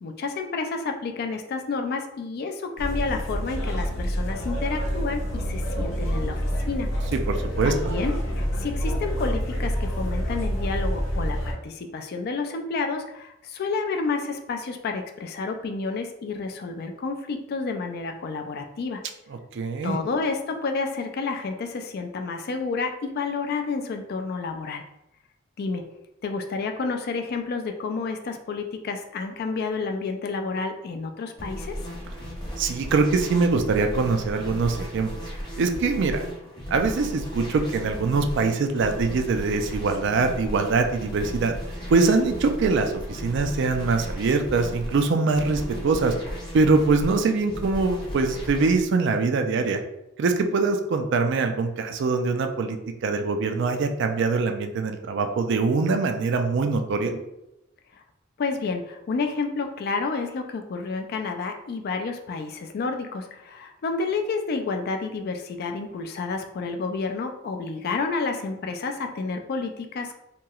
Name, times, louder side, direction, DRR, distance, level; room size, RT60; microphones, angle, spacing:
voice 1, 0.0-6.9 7.6-19.0 19.8-24.8 25.6-25.8 26.2-31.8 58.4-70.1, left 4 dB, 50° left, 5 dB, 0.3 m, -30 dB
sound 1, 2.8-11.5, equal, 80° left, 0.7 m, -27 dB
voice 2, 7.3-7.7 19.5-20.0 32.6-35.1 35.6-36.2 36.7-41.6 41.9-46.1 46.5-49.8 50.2-52.8 53.0-57.2, right 4 dB, 60° right, 6 dB, 0.3 m, -23 dB
sound 2, 31.4-48.8, equal, 20° left, 0.8 m, -36 dB
2.9 x 2.8 x 2.3 m, 0.87 s
head